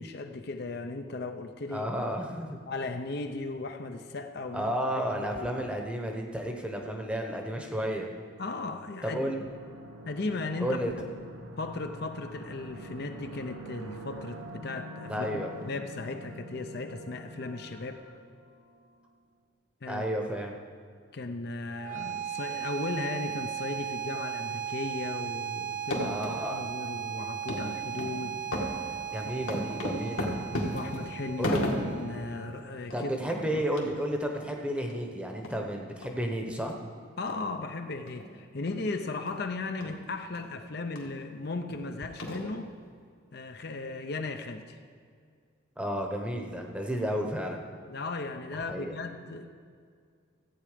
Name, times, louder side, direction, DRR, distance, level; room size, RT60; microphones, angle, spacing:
voice 1, 0.0-1.9 2.7-5.5 8.4-9.2 10.1-10.8 11.6-18.0 19.8-20.0 21.1-28.4 29.3-29.4 30.7-31.6 31.9-33.1 33.5-33.6 37.2-42.7 43.3-44.8 47.9-49.5, left 3 dB, 50° left, 6 dB, 0.6 m, -36 dB
voice 2, 1.7-2.6 4.5-8.1 9.0-9.4 10.6-10.9 15.1-15.5 19.9-20.5 26.0-26.6 29.1-30.3 31.4-31.6 32.9-36.7 45.8-47.7 48.7-49.0, equal, 5° right, 2 dB, 0.9 m, -32 dB
sound 1, 9.2-19.0, right 1 dB, 80° right, 1.3 m, -45 dB
sound 2, 21.7-32.7, right 9 dB, 40° right, 0.8 m, -37 dB
sound 3, 25.7-26.3 26.8-26.9 27.5-27.6 28.0-28.2 28.5-32.1 32.5-32.6 32.8-33.0 33.3-33.4 33.8-33.9 34.4-34.5 34.9-35.0 35.4-35.6 36.0-36.1 36.7-36.8 37.3-37.4 38.1-38.3 38.7-38.8 39.3-39.4 39.8-39.9 40.4-40.5 41.0-41.1 41.7-41.8 42.2-42.8, left 1 dB, 80° left, 1.9 m, -34 dB
14.0 x 8.7 x 5.1 m, 2.1 s
head